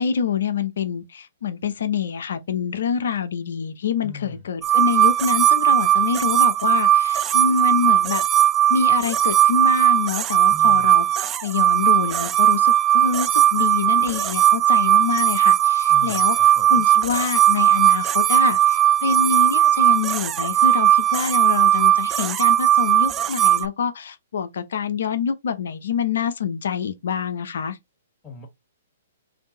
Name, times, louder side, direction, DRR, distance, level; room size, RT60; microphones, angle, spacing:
voice 1, 0.0-8.2 8.7-11.1 11.4-16.4 16.7-27.8, left 6 dB, 70° left, 0.8 m, -26 dB
voice 2, 4.0-4.4 10.5-10.9 15.9-16.8 28.2-28.5, left 4 dB, 15° left, 2.0 m, -39 dB
sound 1, 4.6-23.7, right 12 dB, 25° right, 0.3 m, -18 dB
3.6 x 2.8 x 3.9 m
hypercardioid pair, 125°, 0 cm